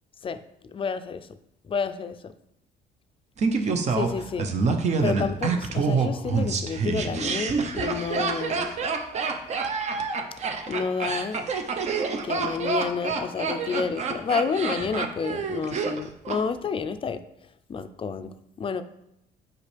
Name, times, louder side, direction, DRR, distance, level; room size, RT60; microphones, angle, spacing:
voice 1, 0.7-1.3 1.6-2.3 3.5-4.6 5.0-8.7 10.7-11.4 12.2-17.2 17.7-18.8, left 5 dB, 30° left, 11 dB, 0.5 m, -30 dB
Laughter, 3.4-16.4 16.7-16.8, right 4 dB, 40° right, 0.8 m, -27 dB
8.2 x 5.3 x 3.3 m, 0.81 s
cardioid pair, 110°, 17 cm